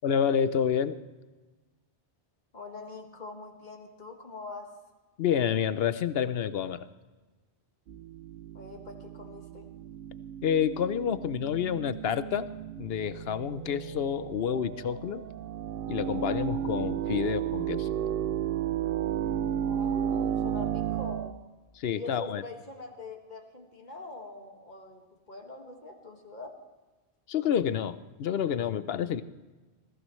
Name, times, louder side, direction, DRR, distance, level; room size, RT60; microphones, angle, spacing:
voice 1, 0.0-1.0 5.2-6.9 10.4-12.5 12.8-15.2 15.9-17.9 21.7-22.4 27.3-29.2, left 8 dB, 65° left, 14 dB, 0.8 m, -28 dB
voice 2, 2.5-4.7 8.5-9.7 19.6-21.4 22.0-26.5, left 3 dB, 40° left, 3 dB, 1.9 m, -43 dB
sound 1, 7.9-21.3, right 10 dB, 60° right, 0.7 m, -33 dB
21.0 x 15.5 x 3.1 m, 1.2 s
omnidirectional pair, 1.2 m